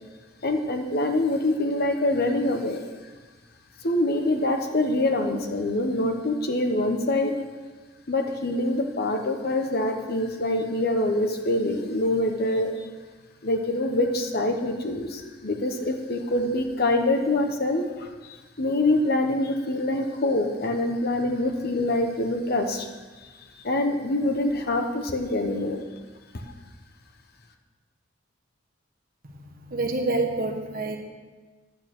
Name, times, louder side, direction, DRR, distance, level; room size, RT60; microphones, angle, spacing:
voice 1, 0.4-2.8 3.8-7.3 8.1-12.8 13.4-22.9 23.2-23.3 23.6-25.9, left 1 dB, 50° left, 5 dB, 1.1 m, -25 dB
voice 2, 29.7-31.0, right 2 dB, 45° right, 4 dB, 1.2 m, -26 dB
9.6 x 8.8 x 6.1 m, 1.3 s
head